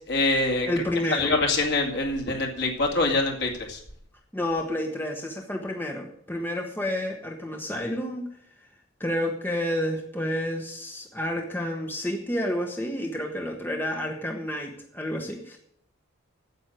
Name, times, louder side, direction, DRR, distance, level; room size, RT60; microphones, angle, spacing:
voice 1, 0.1-0.7 1.1-3.8, left 2 dB, 55° left, 2 dB, 2.4 m, -24 dB
voice 2, 0.6-1.3 4.3-8.3 9.0-15.6, left 1 dB, 10° left, 1 dB, 1.0 m, -30 dB
9.3 x 8.0 x 9.1 m, 0.69 s
head